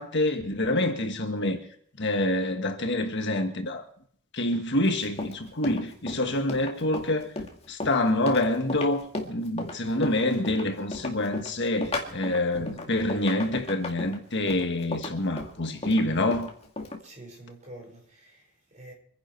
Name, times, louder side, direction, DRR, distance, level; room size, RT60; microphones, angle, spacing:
voice 1, 0.0-1.6 2.0-3.8 4.3-7.3 7.7-16.5, left 1 dB, 50° left, 1.5 m, -27 dB
Run, 4.8-17.0, left 2 dB, 25° left, 2.1 m, -35 dB
voice 2, 17.0-18.9, right 1 dB, 30° right, 5.1 m, -47 dB
25.0 x 10.5 x 4.6 m
head